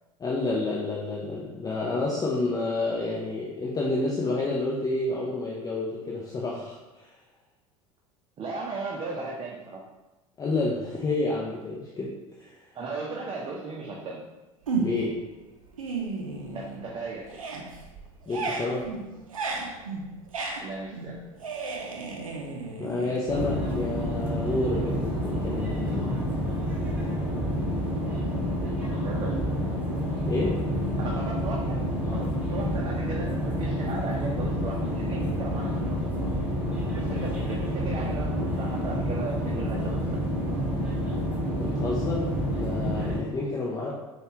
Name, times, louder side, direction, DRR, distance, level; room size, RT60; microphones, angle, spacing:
voice 1, 0.2-7.2 10.4-12.7 14.8-15.2 18.3-18.9 22.8-26.1 30.3-30.6 41.6-43.9, left 2 dB, 20° left, -3 dB, 0.6 m, -29 dB
voice 2, 8.4-9.8 12.7-14.2 16.5-17.4 20.6-21.2 29.0-29.6 31.0-31.8 32.1-36.0 36.9-40.0 43.9-44.0, right 3 dB, 30° right, -3 dB, 0.7 m, -36 dB
sound 1, 14.7-15.2 15.6-17.0 17.2-23.8, right 4 dB, 80° right, 0.6 m, -34 dB
sound 2, 23.3-43.2, equal, 10° right, 1.4 m, -28 dB
5.3 x 2.4 x 3.0 m, 1.1 s
figure-of-eight pair, 75°, 17 cm